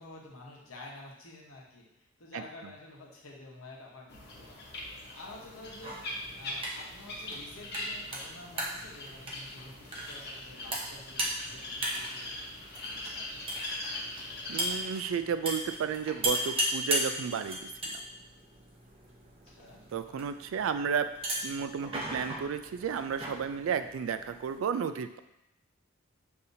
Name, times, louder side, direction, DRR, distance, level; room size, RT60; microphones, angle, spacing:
voice 1, 0.0-4.7 5.1-6.0 6.3-12.4 12.8-13.4 19.4-19.8 20.1-20.4, left 2 dB, 85° left, -3 dB, 1.0 m, -50 dB
sound 1, 4.1-14.8, left 2 dB, 50° left, 1.0 m, -41 dB
sound 2, 5.7-24.6, right 1 dB, 30° right, 0.7 m, -38 dB
voice 2, 14.5-17.9 19.9-21.1 21.4-25.2, right 6 dB, 65° right, 10 dB, 0.3 m, -32 dB
6.6 x 2.8 x 2.7 m, 0.85 s
head